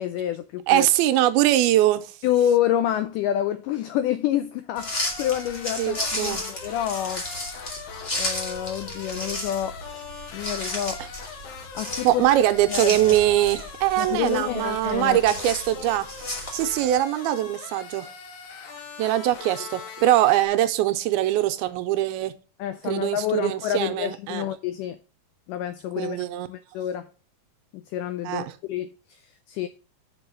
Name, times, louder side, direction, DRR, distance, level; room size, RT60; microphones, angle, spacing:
voice 1, 0.0-0.9 2.2-7.3 8.2-9.8 10.3-11.0 11.7-12.2 12.7-13.2 14.0-15.2 22.6-25.0 25.5-27.1 27.7-29.7, left 11 dB, 90° left, 1.8 m, -28 dB
voice 2, 0.7-2.1 5.8-6.4 12.0-16.1 16.5-18.1 19.0-22.3 22.8-24.5 26.0-26.5 28.3-28.5, right 13 dB, 90° right, 2.6 m, -22 dB
sound 1, 4.7-17.0, left 1 dB, 30° left, 1.1 m, -34 dB
sound 2, 4.8-20.5, left 6 dB, 75° left, 2.8 m, -41 dB
6.1 x 5.5 x 6.3 m
omnidirectional pair, 4.3 m